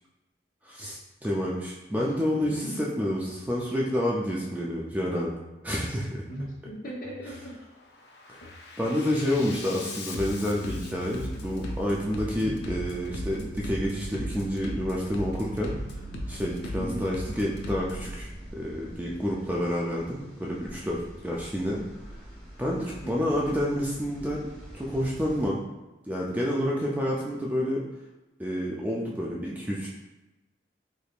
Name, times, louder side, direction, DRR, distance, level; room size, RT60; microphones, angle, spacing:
voice 1, 0.6-5.3 5.6-6.2 8.3-8.4 8.8-15.7 16.3-21.8 22.6-24.5 24.7-25.7 26.1-27.8 28.4-29.9, equal, 10° right, -3 dB, 0.3 m, -29 dB
voice 2, 2.0-2.9 6.3-7.5 8.4-8.5 9.2-9.9 12.4-12.6 16.7-17.0 23.0-23.3, equal, 50° left, -3 dB, 0.8 m, -38 dB
Bass drum, 2.4-2.6 3.0-3.5 4.3-4.6 5.0-5.5 6.3-6.6 7.0-7.5 7.9-18.1, left 1 dB, 65° left, 0.4 m, -39 dB
sound 1, 10.9-25.5, equal, 10° left, 1.1 m, -44 dB
3.3 x 3.2 x 2.4 m, 1.0 s
head